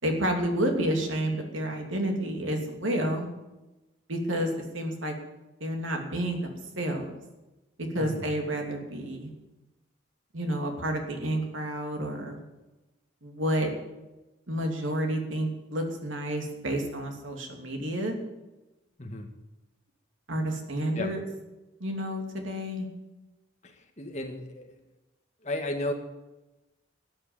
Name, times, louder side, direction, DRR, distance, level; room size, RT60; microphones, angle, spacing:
voice 1, 0.0-3.3 4.1-5.2 5.6-7.1 7.9-9.3 10.3-12.4 13.2-13.7 14.5-18.1 20.3-21.2 21.8-22.9, right 1 dB, 90° right, 3 dB, 2.8 m, -30 dB
voice 2, 8.0-8.3 19.0-19.3 20.9-21.1 23.6-24.8 25.4-25.9, left 1 dB, 35° left, 4 dB, 1.8 m, -34 dB
13.0 x 8.9 x 9.2 m, 1.0 s
head